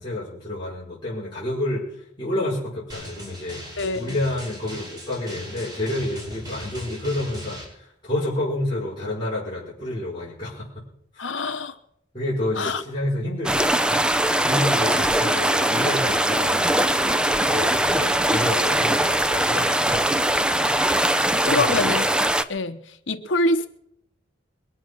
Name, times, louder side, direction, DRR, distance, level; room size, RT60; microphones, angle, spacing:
voice 1, 0.0-10.7 11.1-11.3 12.1-17.1 17.4-20.1 21.4-21.9, left 1 dB, 25° left, -8 dB, 5.8 m, -29 dB
Drum, 2.9-7.6, equal, 20° right, 5.2 m, -38 dB
voice 2, 3.8-4.2 11.2-11.8 12.6-12.8 21.5-22.1 22.5-23.7, left 2 dB, 80° left, 9 dB, 1.1 m, -25 dB
sound 1, 13.4-22.4, right 1 dB, 5° right, 0.6 m, -21 dB
22.5 x 8.0 x 6.3 m, 0.73 s
head